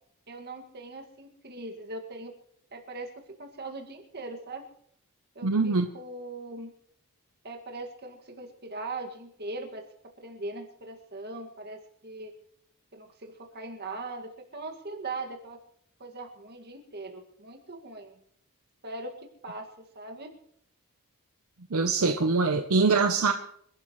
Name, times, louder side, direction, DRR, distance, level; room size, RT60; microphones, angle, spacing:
voice 1, 0.3-2.3 2.7-3.1 3.4-4.6 5.4-6.7 7.4-9.8 10.2-12.3 12.9-15.6 16.0-18.1 18.8-19.7 20.0-20.3, right 2 dB, 45° right, 3 dB, 2.1 m, -40 dB
voice 2, 5.4-5.9 21.7-23.3, right 4 dB, 75° right, 6 dB, 0.8 m, -23 dB
27.0 x 11.5 x 3.2 m, 0.69 s
head